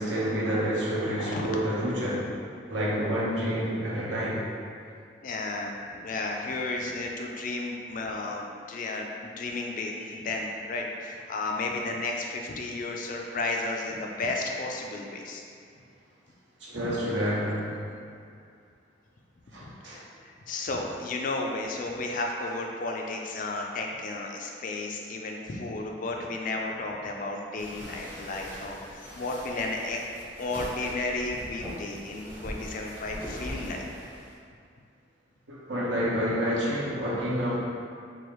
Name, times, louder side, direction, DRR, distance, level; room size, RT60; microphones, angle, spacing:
voice 1, 0.0-2.3 2.7-4.4 16.6-17.9 19.5-20.0 35.5-37.6, equal, 80° right, -7 dB, 0.9 m, -28 dB
voice 2, 5.2-15.4 19.6-30.0 30.4-33.9, left 2 dB, 45° left, 1 dB, 0.3 m, -33 dB
sound 1, 27.6-34.4, equal, 10° right, 0.7 m, -41 dB
4.6 x 2.4 x 3.1 m, 2.4 s
head